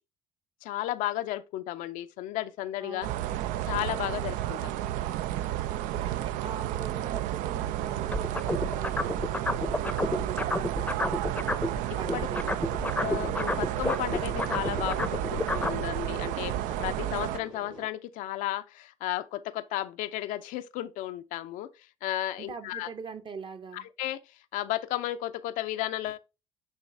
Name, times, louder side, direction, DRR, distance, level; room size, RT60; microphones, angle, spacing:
voice 1, 0.6-3.1 3.7-4.7 11.9-12.3 13.0-22.9 23.7-26.2, left 14 dB, 65° left, 0.5 m, -34 dB
sound 1, 2.4-17.9, right 3 dB, 80° right, 1.2 m, -51 dB
voice 2, 2.8-3.3 5.7-9.2 9.5-11.3 12.0-12.8 22.4-23.9, right 5 dB, 35° right, 0.9 m, -42 dB
sound 2, 3.0-17.4, right 13 dB, 65° right, 0.4 m, -32 dB
sound 3, 8.1-11.8 12.0-15.8, left 2 dB, 10° left, 0.7 m, -30 dB
8.9 x 3.1 x 3.4 m
hypercardioid pair, 55°, 15 cm